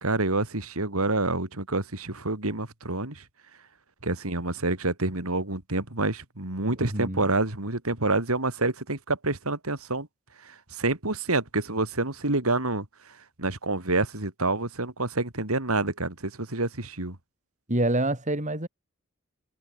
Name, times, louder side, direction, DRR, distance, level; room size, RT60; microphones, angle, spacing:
voice 1, 0.0-3.2 4.0-10.1 10.4-17.2, right 2 dB, 85° right, 3.7 m, -28 dB
voice 2, 6.8-7.2 17.7-18.7, right 1 dB, 35° right, 5.0 m, -26 dB
head